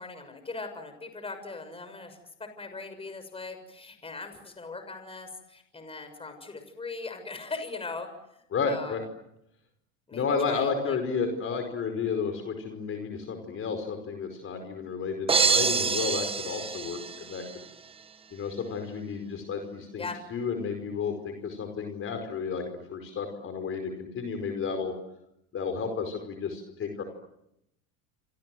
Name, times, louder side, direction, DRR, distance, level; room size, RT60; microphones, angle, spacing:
voice 1, 0.0-9.0 10.1-11.0 20.0-20.2, left 3 dB, 15° left, 8 dB, 6.6 m, -40 dB
voice 2, 8.5-9.0 10.1-17.7 18.3-20.0 20.3-22.6 22.9-24.9 25.5-27.0, left 5 dB, 35° left, 5 dB, 5.1 m, -32 dB
sound 1, 15.3-17.5, right 5 dB, 15° right, 1.2 m, -26 dB
27.5 x 27.5 x 7.8 m, 0.82 s
supercardioid pair, 120°, 36 cm